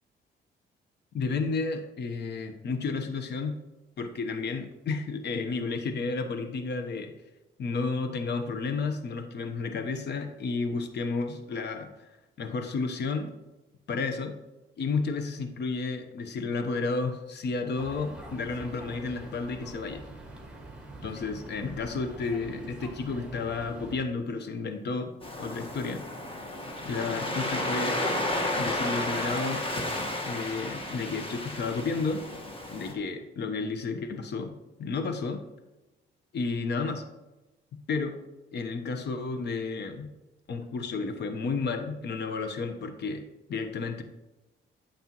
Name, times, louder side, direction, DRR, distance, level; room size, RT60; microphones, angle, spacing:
voice 1, 1.1-3.6 4.0-7.1 7.6-12.1 12.4-13.3 13.9-14.3 14.8-20.0 21.0-25.1 25.4-26.0 26.8-28.0 28.6-29.6 30.2-32.3 32.7-34.5 34.8-35.4 36.3-37.0 37.9-38.2 38.5-40.1 40.5-43.2 43.5-44.0, left 4 dB, 60° left, 7 dB, 1.0 m, -32 dB
sound 1, 17.8-24.0, right 2 dB, 5° right, 1.9 m, -45 dB
Waves surf, 25.2-32.9, left 1 dB, 25° left, 1.5 m, -32 dB
9.2 x 7.1 x 3.0 m, 1.1 s
cardioid pair, 90°, 20 cm